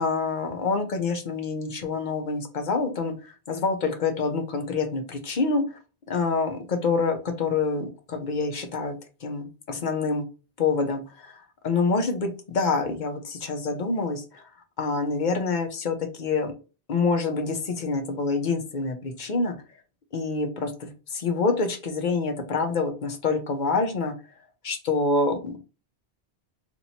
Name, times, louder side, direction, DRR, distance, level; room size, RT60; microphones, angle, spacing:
voice 1, 0.0-5.8 6.1-9.0 9.2-10.3 10.6-14.5 14.8-16.5 16.9-19.6 20.1-24.1 24.6-25.6, left 4 dB, 50° left, 5 dB, 0.8 m, -26 dB
2.9 x 2.6 x 4.1 m, 0.33 s
omnidirectional pair, 1.1 m